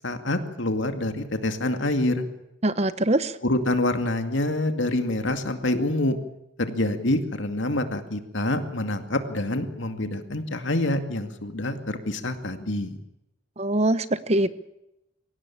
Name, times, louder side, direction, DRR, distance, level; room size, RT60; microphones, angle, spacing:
voice 1, 0.0-2.3 3.4-6.2 6.6-13.0, left 1 dB, 65° left, 8 dB, 2.3 m, -26 dB
voice 2, 2.6-3.3 13.6-14.6, right 1 dB, 30° right, 14 dB, 0.8 m, -23 dB
23.5 x 17.0 x 8.7 m, 0.90 s
head